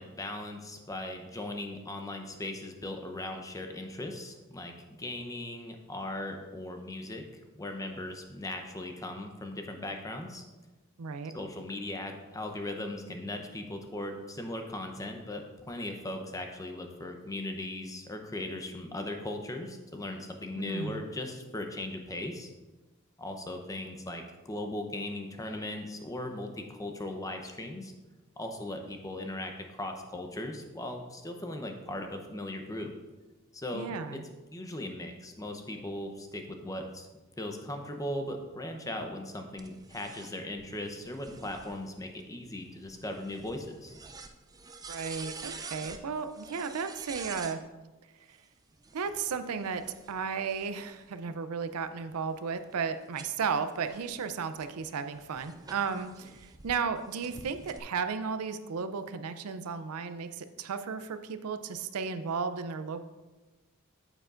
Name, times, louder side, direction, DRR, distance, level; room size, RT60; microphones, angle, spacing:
voice 1, 0.0-7.3 7.6-10.4 11.3-22.5 23.2-27.9 28.4-32.9 33.5-34.2 34.5-37.1 37.4-43.9, left 1 dB, 15° left, 4 dB, 0.7 m, -38 dB
voice 2, 11.0-11.3 20.6-21.0 33.7-34.2 44.9-47.6 48.9-63.0, right 5 dB, 85° right, 10 dB, 0.5 m, -34 dB
sound 1, 39.6-47.6 48.7-51.1 51.7-56.7 57.2-57.8, right 4 dB, 15° right, 0.4 m, -48 dB
8.7 x 8.0 x 2.5 m, 1.2 s
head